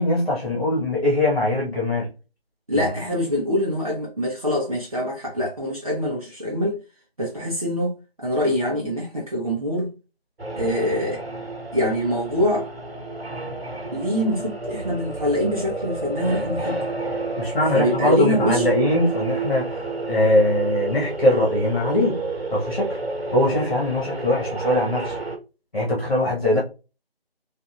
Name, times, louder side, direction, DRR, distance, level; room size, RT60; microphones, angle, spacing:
voice 1, 0.0-2.1 2.7-2.9 17.4-22.2 22.5-23.0 23.3-25.1 25.7-26.6, left 1 dB, 50° left, 1.4 m, -21 dB
voice 2, 2.7-6.8 7.2-9.9 10.6-11.2 11.7-12.7 13.9-16.9 17.7-18.7 26.5-26.6, equal, 35° right, 0.7 m, -24 dB
sound 1, 10.4-25.4, right 3 dB, 75° right, 1.1 m, -30 dB
3.5 x 2.6 x 2.4 m
figure-of-eight pair, 165°, 31 cm